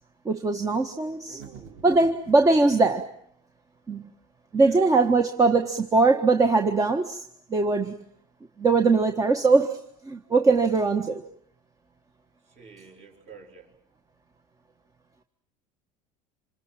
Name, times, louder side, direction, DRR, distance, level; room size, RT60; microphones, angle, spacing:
voice 1, 0.2-1.4 1.8-3.1 3.9-4.1 4.5-7.2 7.5-8.0 8.6-11.2, right 3 dB, 20° right, 1.5 m, -21 dB
voice 2, 1.3-1.9 4.5-4.9 12.5-13.7, right 5 dB, 40° right, 6.1 m, -48 dB
sound 1, 1.4-2.5, right 7 dB, 85° right, 3.0 m, -46 dB
27.5 x 26.5 x 7.4 m
cardioid pair, 135°, 18 cm